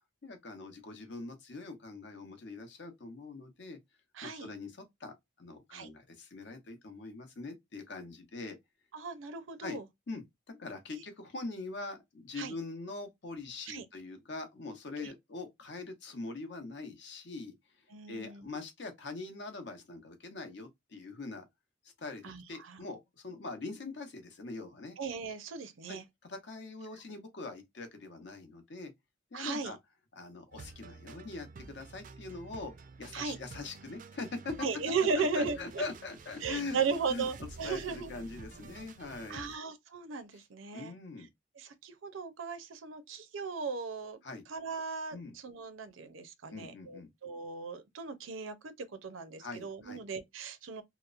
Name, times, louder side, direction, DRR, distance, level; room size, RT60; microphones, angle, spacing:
voice 1, 0.2-3.8 4.2-8.6 9.6-9.8 10.1-17.5 18.1-21.4 22.0-25.0 25.9-28.9 29.3-29.8 30.2-32.7 33.0-34.5 35.0-36.8 37.1-37.3 37.6-39.6 40.3-40.4 40.7-41.3 44.2-44.4 45.1-45.3 46.5-47.1 49.4-50.0, left 3 dB, 60° left, 0.7 m, -43 dB
voice 2, 4.2-4.5 5.7-5.9 8.9-9.8 10.9-11.0 12.4-12.5 13.7-13.8 15.0-15.1 17.9-18.5 22.2-22.8 25.0-26.0 29.3-29.7 33.1-33.4 34.6-35.8 36.4-38.1 39.3-40.9 41.6-44.2 44.5-50.8, right 5 dB, 90° right, 0.5 m, -36 dB
sound 1, 30.5-39.6, right 4 dB, 40° right, 0.3 m, -50 dB
2.9 x 2.0 x 2.4 m
head